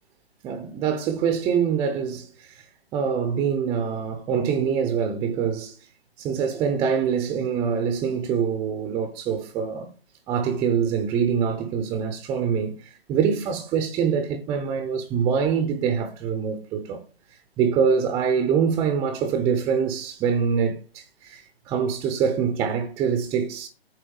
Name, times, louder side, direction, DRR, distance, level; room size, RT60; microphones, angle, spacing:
voice 1, 0.4-2.5 2.9-5.8 6.2-9.9 10.3-12.7 13.1-17.0 17.6-23.7, right 7 dB, 10° right, 0.7 m, -24 dB
8.8 x 6.1 x 7.9 m
figure-of-eight pair, 145°, 32 cm